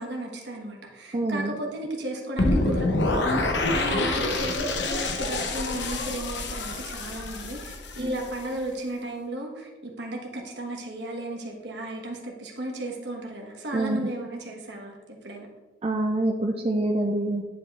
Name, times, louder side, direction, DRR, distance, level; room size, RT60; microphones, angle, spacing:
voice 1, 0.0-14.9 15.2-15.5, right 1 dB, 70° right, 0 dB, 1.3 m, -34 dB
voice 2, 1.1-1.5 8.0-8.1 13.7-14.1 15.8-17.4, right 1 dB, 30° right, 1 dB, 0.4 m, -26 dB
sound 1, 2.4-8.4, left 2 dB, 75° left, 0.8 m, -27 dB
10.5 x 5.0 x 2.4 m, 1.2 s
head